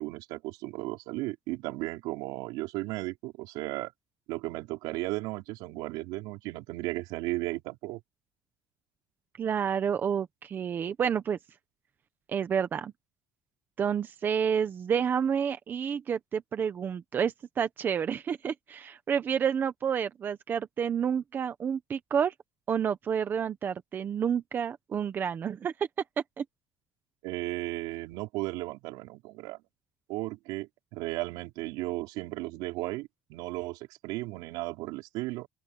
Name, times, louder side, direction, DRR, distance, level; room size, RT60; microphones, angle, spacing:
voice 1, 0.0-3.9 4.3-8.0 27.2-29.6 30.1-35.5, right 20 dB, 85° right, 4.8 m, -35 dB
voice 2, 9.4-11.4 12.3-12.9 13.8-22.3 22.7-25.7 26.4-26.5, right 7 dB, 30° right, 1.1 m, -29 dB
open air
cardioid pair, 160°, 7 cm